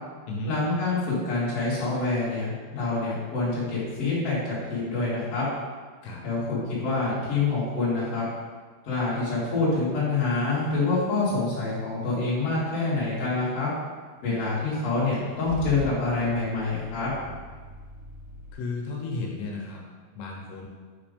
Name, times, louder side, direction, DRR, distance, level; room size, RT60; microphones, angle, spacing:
voice 1, 0.5-5.4 6.2-8.2 8.8-13.7 14.2-17.1, left 3 dB, 45° left, -9 dB, 2.3 m, -26 dB
Car / Engine starting / Idling, 15.1-18.5, left 1 dB, 85° right, 2.8 m, -42 dB
voice 2, 18.5-19.8 20.1-20.7, left 3 dB, 85° left, -2 dB, 3.0 m, -34 dB
6.2 x 3.3 x 5.1 m, 1.5 s
omnidirectional pair, 4.9 m